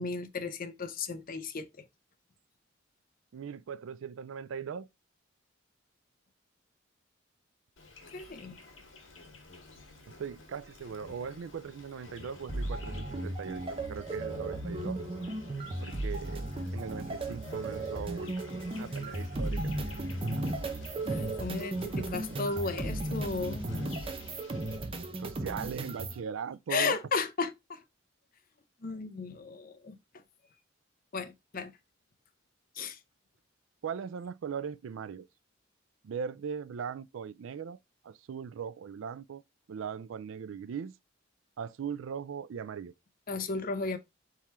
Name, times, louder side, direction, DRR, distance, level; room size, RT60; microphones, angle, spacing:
voice 1, 0.0-1.7 8.1-8.6 21.0-23.7 26.7-27.8 28.8-30.0 31.1-31.7 32.8-33.0 43.3-44.0, left 4 dB, 45° left, 0.6 m, -34 dB
voice 2, 3.3-4.9 10.2-15.0 15.8-18.5 18.8-19.7 20.4-20.5 21.8-22.1 25.2-27.0 33.8-35.3 36.0-37.8 38.0-39.4 39.7-40.9 41.6-42.9, right 6 dB, 80° right, 0.4 m, -39 dB
Insect, 7.8-24.8, left 3 dB, 70° left, 1.8 m, -48 dB
sound 1, 12.5-26.2, right 2 dB, 30° right, 0.7 m, -35 dB
4.3 x 3.7 x 2.9 m
head